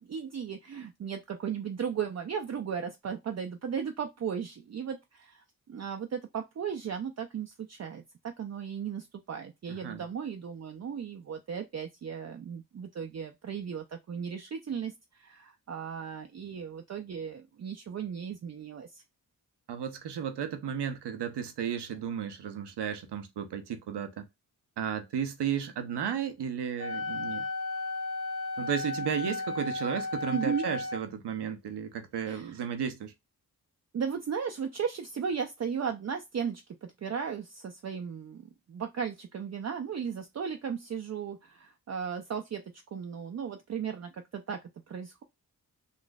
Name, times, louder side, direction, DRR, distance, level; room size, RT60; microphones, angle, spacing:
voice 1, 0.0-19.0 30.3-30.7 32.3-32.6 33.9-38.4 38.7-42.6 42.9-44.6 44.9-45.2, right 7 dB, 40° right, 0.5 m, -36 dB
voice 2, 9.7-10.0 19.7-24.3 24.8-27.4 28.6-33.1, right 8 dB, 75° right, 0.7 m, -34 dB
Wind instrument woodwind instrument, 26.8-31.0, left 2 dB, 65° left, 1.3 m, -34 dB
3.9 x 2.5 x 2.3 m
cardioid pair, 45°, 41 cm